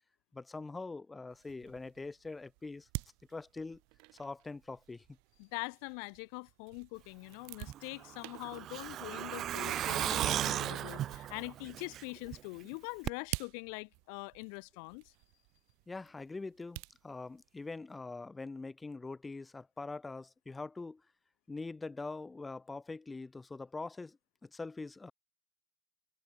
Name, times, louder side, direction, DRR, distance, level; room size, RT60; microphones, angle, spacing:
voice 1, 0.3-2.9 3.3-3.8 4.2-5.0 15.9-21.0 21.5-25.1, left 3 dB, 15° left, 1.8 m, -43 dB
sound 1, 1.3-17.8, right 33 dB, 65° right, 1.5 m, -49 dB
voice 2, 5.4-15.1, left 40 dB or more, 70° left, 2.7 m, -43 dB
Truck, 7.7-12.4 12.7-12.8 13.1-13.2, right 11 dB, 45° right, 1.2 m, -35 dB
supercardioid pair, 110°, 0 cm